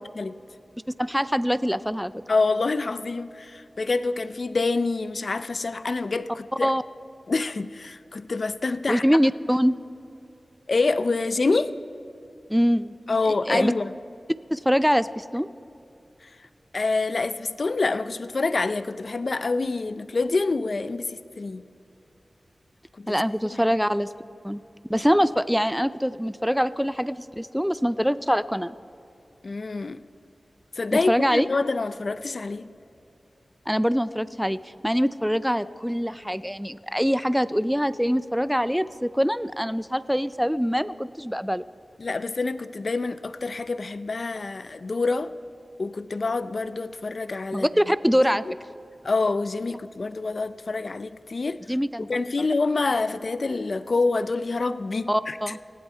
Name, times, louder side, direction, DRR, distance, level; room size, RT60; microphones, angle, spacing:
voice 1, 1.0-2.1 6.6-6.8 8.9-9.8 12.5-12.9 13.5-13.7 14.5-15.5 23.1-24.1 24.4-24.6 24.9-28.8 30.9-31.5 33.7-34.6 34.8-41.6 47.5-48.4 51.7-52.1 55.1-55.6, equal, ahead, 15 dB, 0.4 m, -24 dB
voice 2, 2.3-6.7 7.3-9.0 10.7-11.7 13.1-13.9 16.2-16.3 16.7-21.6 23.0-23.7 29.4-30.0 30.8-32.7 42.0-45.3 45.8-47.7 49.0-51.6 52.1-55.4, left 3 dB, 60° left, 14 dB, 0.5 m, -26 dB
19.0 x 15.5 x 4.5 m, 2.7 s
wide cardioid pair, 55°, 0 cm